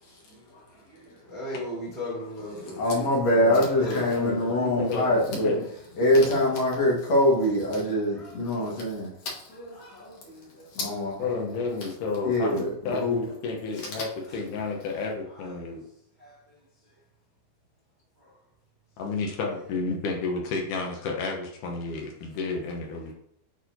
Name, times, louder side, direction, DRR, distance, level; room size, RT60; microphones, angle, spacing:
voice 1, 1.3-3.0 3.8-4.0 7.9-8.4 9.7-10.0 16.2-16.3, equal, 20° right, -6 dB, 1.3 m, -37 dB
voice 2, 2.6-5.6 6.0-9.1 9.5-10.4 10.7-11.2 12.2-13.2, left 1 dB, 55° left, -4 dB, 2.7 m, -24 dB
voice 3, 3.3-5.7 11.2-15.8 19.0-23.1, left 4 dB, 75° left, 1 dB, 2.4 m, -31 dB
9.0 x 4.1 x 2.7 m, 0.71 s
omnidirectional pair, 3.8 m